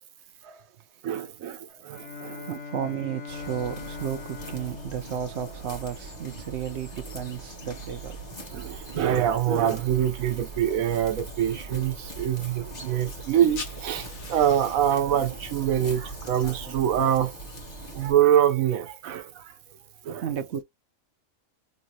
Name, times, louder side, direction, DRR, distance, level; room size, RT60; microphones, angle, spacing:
voice 1, 1.0-2.4 8.5-17.3 17.9-19.5 20.0-20.2, right 10 dB, 80° right, 1.2 m, -25 dB
Bowed string instrument, 1.9-6.3, left 4 dB, 60° left, 1.4 m, -41 dB
voice 2, 2.4-8.2 20.2-20.6, right 9 dB, 60° right, 0.9 m, -33 dB
sound 1, 3.3-18.1, right 2 dB, 30° left, 1.3 m, -41 dB
sound 2, 13.3-18.5, left 5 dB, 75° left, 1.4 m, -47 dB
3.3 x 2.8 x 2.8 m
omnidirectional pair, 1.4 m